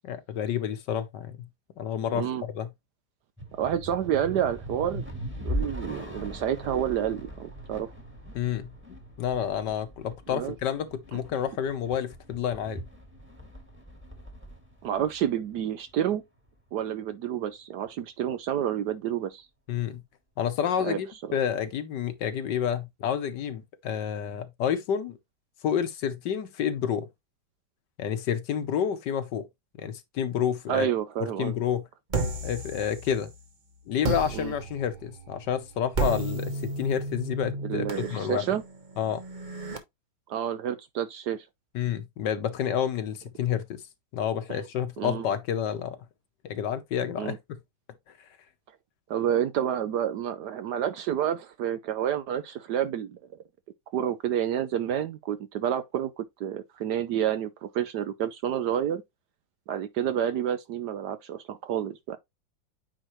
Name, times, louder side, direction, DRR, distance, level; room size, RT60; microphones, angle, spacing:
voice 1, 0.0-1.5 1.8-2.7 8.3-8.7 9.2-12.8 19.7-20.0 20.4-25.1 25.6-27.0 28.0-29.5 29.8-30.9 31.4-31.8 32.4-33.3 33.9-38.5 39.0-39.2 41.7-43.8 44.1-46.0 46.4-47.4, left 9 dB, 65° left, 1.4 m, -29 dB
voice 2, 2.1-2.4 3.6-5.0 5.4-7.9 10.3-10.5 11.1-11.2 14.8-16.2 16.7-19.5 20.8-21.0 21.3-21.4 30.7-31.6 34.3-34.5 37.6-38.6 40.3-41.4 44.5-44.6 45.0-45.3 47.2-47.4 49.1-53.2 53.9-59.0 59.7-62.2, right 10 dB, 70° right, 1.1 m, -29 dB
sound 1, 3.4-15.9, equal, 5° right, 1.7 m, -39 dB
sound 2, 32.1-33.5 34.0-39.8, right 2 dB, 30° right, 0.9 m, -33 dB
9.0 x 4.2 x 3.0 m
omnidirectional pair, 2.1 m